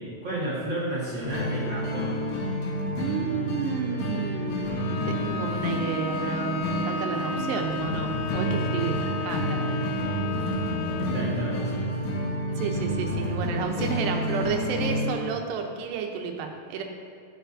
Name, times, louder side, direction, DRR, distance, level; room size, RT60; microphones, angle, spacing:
voice 1, 0.0-2.2 11.0-11.9, right 1 dB, 60° right, -9 dB, 1.2 m, -32 dB
sound 1, 1.2-15.1, equal, 75° left, 1.7 m, -29 dB
voice 2, 3.0-9.9 12.5-16.8, right 6 dB, 80° right, 3 dB, 2.8 m, -32 dB
Bowed string instrument, 4.7-11.3, left 3 dB, 90° left, 3.0 m, -34 dB
14.0 x 6.6 x 2.6 m, 2.5 s
omnidirectional pair, 4.9 m